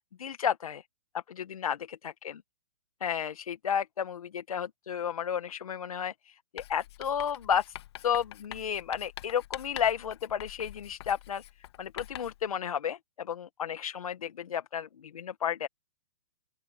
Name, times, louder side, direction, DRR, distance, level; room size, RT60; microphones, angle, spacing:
voice 1, 0.2-0.8 1.3-2.3 3.0-7.7 8.0-11.4 11.8-14.9 15.1-15.7, left 8 dB, 80° left, 1.5 m, -32 dB
Writing, 6.6-12.5, left 14 dB, 45° left, 1.8 m, -45 dB
open air
hypercardioid pair, 155°, 18 cm